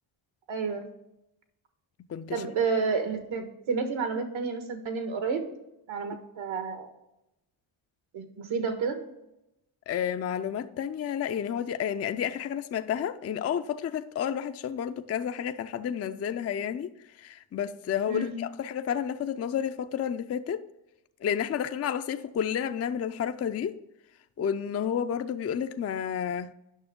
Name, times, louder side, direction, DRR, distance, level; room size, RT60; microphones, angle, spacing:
voice 1, 0.5-0.8 2.3-5.4 5.9-6.9 8.1-9.0 18.1-18.4, right 5 dB, 70° right, 1.4 m, -30 dB
voice 2, 2.1-2.4 9.9-16.9 17.2-20.6 21.2-23.7 24.4-26.5, left 8 dB, 35° left, 0.4 m, -31 dB
9.2 x 6.1 x 3.6 m
cardioid pair, 75°, 49 cm